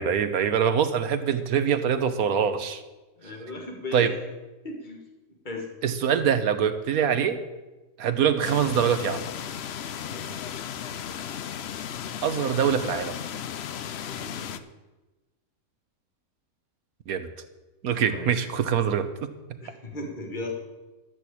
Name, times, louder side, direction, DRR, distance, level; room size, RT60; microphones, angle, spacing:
voice 1, 0.0-2.8 3.9-4.1 5.8-7.4 8.0-9.2 12.2-13.2 17.1-17.3 17.8-19.3, right 8 dB, 80° right, 10 dB, 1.4 m, -24 dB
voice 2, 3.2-4.1 4.6-5.1 5.4-5.7 10.1-10.3 14.1-14.6 18.0-18.3 19.6-20.5, left 2 dB, 35° left, 1 dB, 2.2 m, -37 dB
sound 1, 8.4-14.6, left 9 dB, 55° left, 0.8 m, -35 dB
13.0 x 6.2 x 8.5 m, 1.1 s
omnidirectional pair, 1.5 m